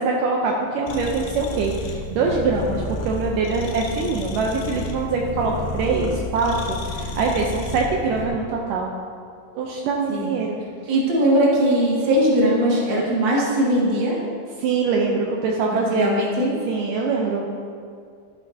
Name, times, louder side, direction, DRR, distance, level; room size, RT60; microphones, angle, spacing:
voice 1, 0.0-8.9 9.5-10.6 14.6-16.1 16.7-17.4, right 4 dB, 75° right, -1 dB, 2.2 m, -23 dB
sound 1, 0.9-8.3, left 2 dB, 80° left, 2.6 m, -31 dB
voice 2, 10.9-14.1 15.7-16.5, right 1 dB, 40° right, -5 dB, 2.4 m, -20 dB
14.0 x 9.9 x 2.8 m, 2.2 s
omnidirectional pair, 4.0 m